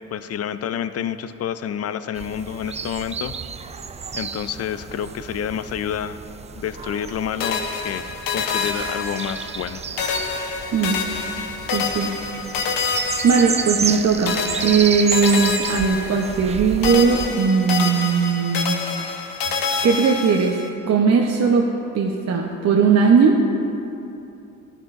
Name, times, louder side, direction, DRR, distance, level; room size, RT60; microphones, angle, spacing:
voice 1, 0.1-3.3 4.1-6.2 6.5-8.0 8.3-9.9, left 9 dB, 45° left, 12 dB, 0.5 m, -28 dB
sound 1, 2.1-17.3, right 6 dB, 20° right, 0.3 m, -31 dB
sound 2, 7.4-9.7 10.0-14.0 14.3-16.6 16.8-20.7, left 5 dB, 70° left, 1.1 m, -27 dB
voice 2, 11.7-12.1 12.7-13.0 13.2-18.8 19.1-19.4 19.8-20.6 20.9-21.7 21.9-23.4, right 5 dB, 45° right, 0 dB, 0.9 m, -18 dB
13.0 x 10.5 x 2.6 m, 2.7 s
supercardioid pair, 70°, 36 cm